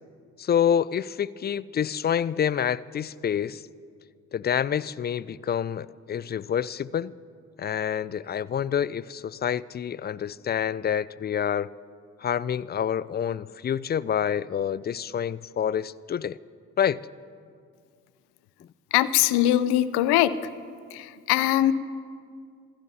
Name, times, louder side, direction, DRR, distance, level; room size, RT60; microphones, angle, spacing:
voice 1, 0.4-3.6 4.3-7.1 7.6-11.7 12.2-16.4 16.8-17.0, left 8 dB, 25° left, 19 dB, 0.4 m, -27 dB
voice 2, 18.9-20.3 20.9-21.7, left 13 dB, 70° left, 15 dB, 0.7 m, -21 dB
26.5 x 15.0 x 2.8 m, 2.2 s
hypercardioid pair, 45°, 41 cm